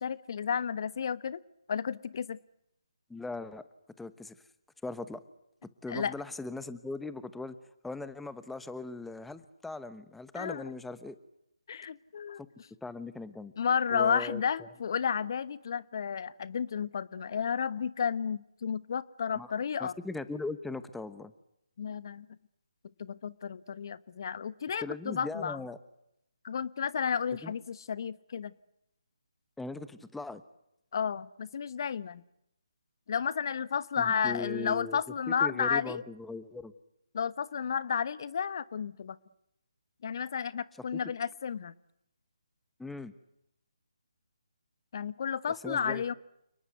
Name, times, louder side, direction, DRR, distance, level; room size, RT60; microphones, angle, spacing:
voice 1, 0.0-1.4 1.7-2.4 5.9-6.1 10.3-10.7 11.7-12.4 13.6-19.9 21.8-22.3 23.0-25.6 26.4-28.5 30.9-32.2 33.1-36.0 37.1-39.2 40.0-41.7 44.9-46.1, left 7 dB, 45° left, 17 dB, 1.2 m, -32 dB
voice 2, 3.1-3.7 4.0-4.3 4.8-5.2 5.8-7.6 7.8-11.2 12.8-13.5 13.9-14.7 19.3-19.5 19.8-21.3 24.8-25.8 27.4-27.5 29.6-30.4 34.0-35.0 35.3-36.7 40.9-41.0 42.8-43.1 45.6-46.0, left 3 dB, 5° left, 14 dB, 1.1 m, -39 dB
29.5 x 20.0 x 9.2 m, 0.81 s
figure-of-eight pair, 150°, 3 cm